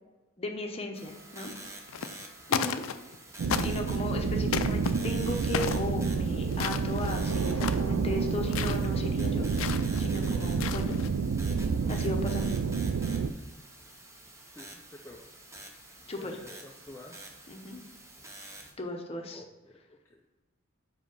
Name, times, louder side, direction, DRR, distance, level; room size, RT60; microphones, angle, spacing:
voice 1, 0.4-1.5 1.9-2.2 2.5-2.9 3.6-11.0 11.9-12.5 16.1-16.4 17.5-17.8 18.8-19.4, left 2 dB, 30° left, 3 dB, 0.8 m, -36 dB
sound 1, 0.9-18.7, right 2 dB, 15° right, 0.7 m, -48 dB
sound 2, 1.9-2.2 2.5-3.2 3.5-4.0 4.5-4.9 5.5-5.9 6.5-7.1 7.5-7.9 8.5-8.8 9.6-10.0 10.5-11.1, left 7 dB, 75° left, 0.4 m, -33 dB
sound 3, 3.4-13.3, right 5 dB, 80° right, 0.4 m, -29 dB
voice 2, 14.5-15.3 16.2-17.2 19.3-20.4, left 2 dB, 10° left, 0 dB, 0.4 m, -50 dB
5.1 x 5.0 x 5.2 m, 1.2 s
head